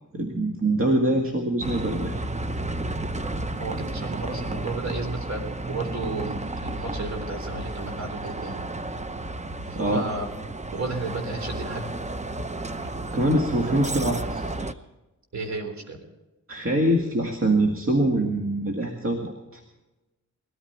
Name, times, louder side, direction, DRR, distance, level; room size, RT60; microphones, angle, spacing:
voice 1, 0.1-2.2 9.7-10.0 13.1-14.7 16.5-19.6, right 1 dB, 45° right, 1 dB, 2.0 m, -24 dB
Bus, 1.6-14.7, right 2 dB, 20° right, 0.8 m, -32 dB
voice 2, 3.6-8.6 9.8-10.3 10.7-11.9 15.3-16.0, right 2 dB, 60° right, 4 dB, 3.8 m, -33 dB
20.5 x 14.0 x 4.4 m, 1.1 s
wide cardioid pair, 85°, 31 cm